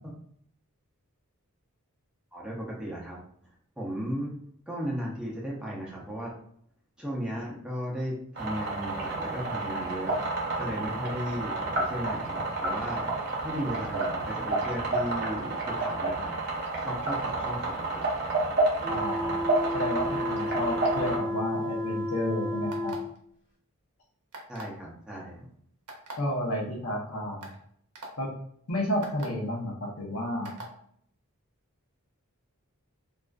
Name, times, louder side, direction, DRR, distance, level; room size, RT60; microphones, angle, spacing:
voice 1, 2.3-3.2 3.8-4.3 4.7-6.3 7.0-10.2 10.6-13.0 13.4-16.3 16.8-18.0 24.5-25.5, equal, 5° right, -4 dB, 0.5 m, -35 dB
sound 1, 8.4-21.2, right 2 dB, 45° right, 0.6 m, -30 dB
voice 2, 18.8-19.4 19.7-23.0 26.2-27.5 28.2-28.3 28.7-30.5, left 1 dB, 70° left, -1 dB, 0.7 m, -31 dB
sound 2, 18.8-23.1, left 1 dB, 35° left, 0.8 m, -32 dB
sound 3, 22.7-23.2 24.3-24.8 25.9-26.1 26.9-27.0 27.4-27.5 27.9-28.1 29.0-29.3 30.4-30.7, right 2 dB, 90° right, 0.6 m, -41 dB
2.4 x 2.3 x 2.2 m, 0.66 s
head